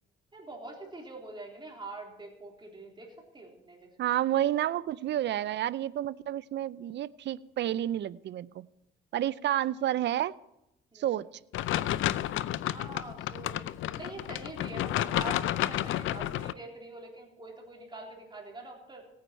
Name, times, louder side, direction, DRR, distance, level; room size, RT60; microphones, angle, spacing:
voice 1, 0.3-3.9 10.9-11.2 12.7-13.6 14.0-19.0, right 2 dB, 25° right, 0 dB, 3.6 m, -44 dB
voice 2, 4.0-8.7 9.1-10.3 10.9-11.3, right 12 dB, 60° right, 19 dB, 0.5 m, -30 dB
sound 1, 11.5-16.5, left 13 dB, 80° left, 0.5 m, -31 dB
17.5 x 9.5 x 4.5 m, 0.87 s
cardioid pair, 90°, 20 cm